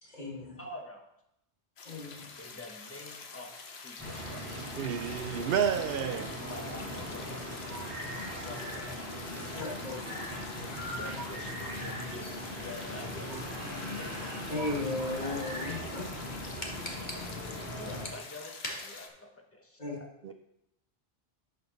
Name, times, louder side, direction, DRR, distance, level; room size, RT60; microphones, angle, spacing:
voice 1, 0.0-0.6 1.8-2.3 9.5-10.0 14.5-16.1 16.6-17.2 18.6-18.8 19.8-20.0, left 2 dB, 45° left, 1.8 m, -36 dB
voice 2, 0.6-1.0 2.4-4.7 6.2-9.1 11.0-12.3 12.5-14.3 17.8-20.3, left 2 dB, 15° left, 1.0 m, -47 dB
sound 1, 1.8-19.1, left 5 dB, 80° left, 1.1 m, -47 dB
sound 2, 4.0-18.1, left 1 dB, 10° right, 3.3 m, -40 dB
voice 3, 4.8-6.3 20.2-20.3, right 8 dB, 70° right, 0.8 m, -30 dB
sound 3, 5.7-12.5 12.8-16.0, right 1 dB, 45° right, 3.5 m, -45 dB
11.0 x 5.3 x 3.9 m
omnidirectional pair, 1.0 m